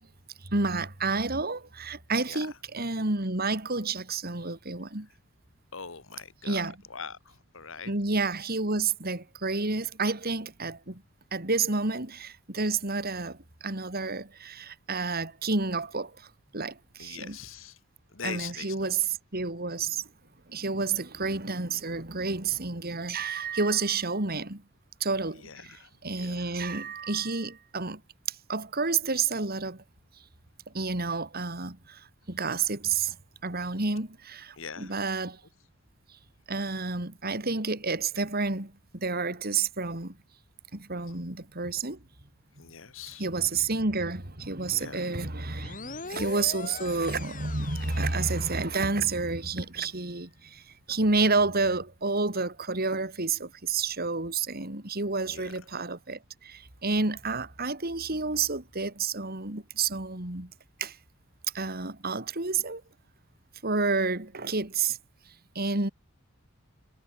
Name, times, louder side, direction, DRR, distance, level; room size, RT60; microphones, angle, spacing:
voice 1, 0.4-5.1 6.4-6.8 7.8-11.0 11.3-16.3 16.5-17.4 18.2-20.0 20.5-24.6 25.0-28.0 28.3-29.8 30.7-33.1 33.4-35.4 36.5-40.2 40.7-42.0 43.2-50.6 50.9-60.5 60.8-61.0 61.5-62.8 63.6-65.0 65.5-65.9, right 4 dB, 45° right, 3.3 m, -30 dB
voice 2, 5.7-7.9 17.0-17.8 18.1-19.0 25.3-26.5 34.6-34.9 42.6-43.3 44.7-45.0 55.3-55.5, left 6 dB, 65° left, 1.7 m, -42 dB
sound 1, 45.6-49.1, left 4 dB, 40° left, 4.1 m, -41 dB
head